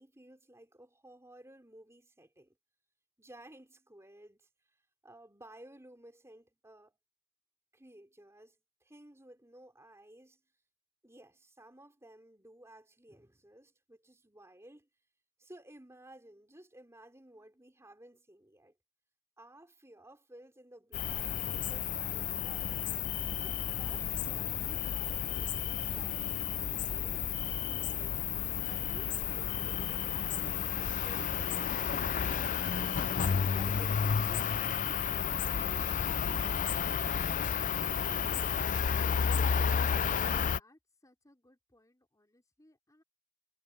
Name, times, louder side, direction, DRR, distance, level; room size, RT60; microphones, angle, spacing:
voice 1, 0.0-2.6 3.2-4.8 5.0-7.0 7.7-10.4 11.0-14.9 15.4-18.8 19.4-22.8 23.4-27.3 27.8-28.2 28.7-32.7 33.3-35.0 35.4-37.5, right 1 dB, 15° right, 3.8 m, -56 dB
Cricket, 20.9-40.6, left 7 dB, 40° left, 0.4 m, -32 dB
voice 2, 40.5-43.0, left 1 dB, 15° left, 4.2 m, -66 dB
head